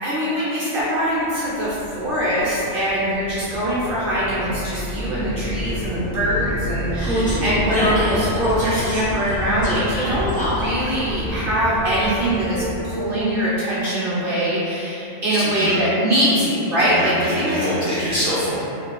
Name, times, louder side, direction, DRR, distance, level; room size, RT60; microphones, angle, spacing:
voice 1, 0.0-17.6, equal, 55° right, -10 dB, 0.6 m, -22 dB
Vehicle, 1.3-13.2, equal, 10° left, 0.4 m, -27 dB
voice 2, 15.3-15.7 16.8-18.7, left 1 dB, 55° left, -9 dB, 0.8 m, -25 dB
2.4 x 2.3 x 3.0 m, 2.9 s
omnidirectional pair, 1.4 m